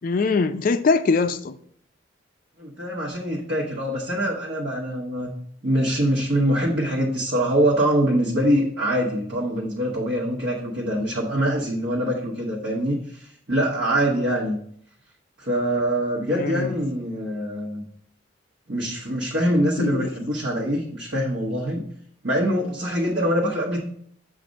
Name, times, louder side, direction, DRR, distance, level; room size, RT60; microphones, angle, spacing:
voice 1, 0.0-1.5 16.3-16.8 19.8-20.1, left 4 dB, 45° left, 0.3 m, -22 dB
voice 2, 2.6-5.3 5.6-14.6 15.4-17.8 18.7-21.8 22.2-23.8, equal, 60° right, 1.1 m, -24 dB
7.4 x 2.5 x 5.1 m
head